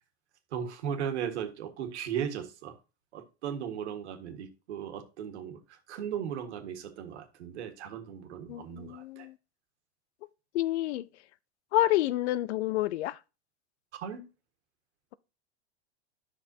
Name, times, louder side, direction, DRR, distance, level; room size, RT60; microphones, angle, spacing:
voice 1, 0.5-2.8 3.1-9.3 14.0-14.2, right 8 dB, 80° right, 1.6 m, -37 dB
voice 2, 8.5-9.4 10.5-11.1 11.7-13.2, left 14 dB, 75° left, 0.6 m, -28 dB
10.5 x 6.1 x 2.8 m
hypercardioid pair, 120°, 34 cm